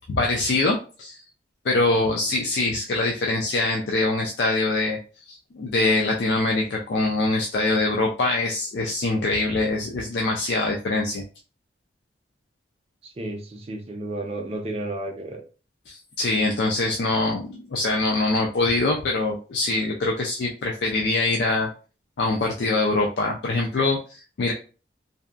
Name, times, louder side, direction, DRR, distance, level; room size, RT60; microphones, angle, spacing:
voice 1, 0.1-1.2 1.7-5.0 5.3-11.2 15.9-21.7 22.2-24.5, left 2 dB, 65° left, 0 dB, 0.4 m, -24 dB
voice 2, 13.0-15.4, right 1 dB, 35° right, 3 dB, 0.5 m, -32 dB
2.6 x 2.2 x 2.3 m, 0.35 s
head